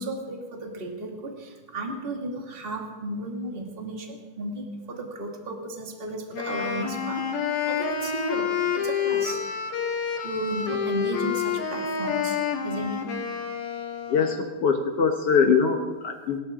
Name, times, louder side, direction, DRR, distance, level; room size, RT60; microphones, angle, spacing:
voice 1, 0.0-7.2 7.7-9.5 10.2-12.4 12.6-13.0, right 2 dB, 20° right, 1 dB, 1.8 m, -34 dB
Wind instrument woodwind instrument, 6.3-14.4, left 7 dB, 85° left, 3.5 m, -28 dB
voice 2, 14.1-16.4, left 6 dB, 65° left, 4 dB, 1.4 m, -22 dB
28.0 x 13.5 x 3.8 m, 1.3 s
omnidirectional pair, 4.2 m